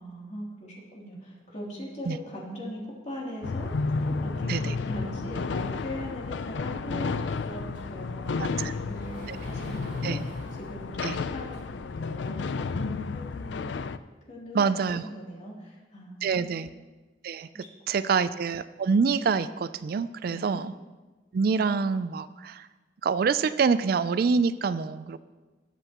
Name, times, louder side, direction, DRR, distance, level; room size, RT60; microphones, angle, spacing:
voice 1, 0.0-10.2 10.6-13.7 14.3-14.6 14.9-16.6 17.5-18.1 20.2-20.6, equal, 40° left, -4 dB, 3.0 m, -40 dB
sound 1, 3.4-14.0, left 4 dB, 85° left, 0.4 m, -32 dB
Sliding door, 7.0-12.0, right 1 dB, 80° right, 3.4 m, -48 dB
voice 2, 8.4-8.7 9.3-9.4 10.0-10.2 11.0-11.2 14.5-15.0 16.2-16.7 17.2-17.5 17.9-20.7 21.3-22.7 23.0-25.2, right 5 dB, 55° right, 14 dB, 0.4 m, -26 dB
20.0 x 8.0 x 3.0 m, 1.2 s
head